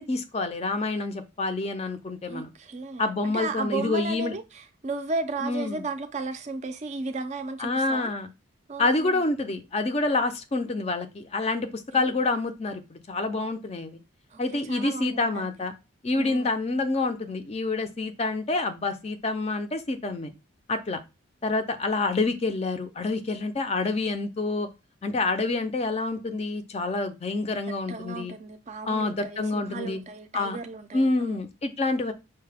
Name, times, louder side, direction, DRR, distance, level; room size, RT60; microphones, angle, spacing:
voice 1, 0.0-2.5 3.0-4.3 5.4-5.8 7.6-8.3 8.8-14.0 14.4-15.7 16.0-20.3 20.7-21.0 21.4-24.7 25.0-28.3 28.9-30.0 30.3-30.6 30.9-32.1, left 3 dB, 30° left, 0.4 m, -27 dB
voice 2, 2.3-8.1 8.7-9.2 11.9-12.1 14.3-15.5 16.1-16.5 27.9-31.4, right 3 dB, 35° right, 0.4 m, -35 dB
5.5 x 2.2 x 3.4 m
head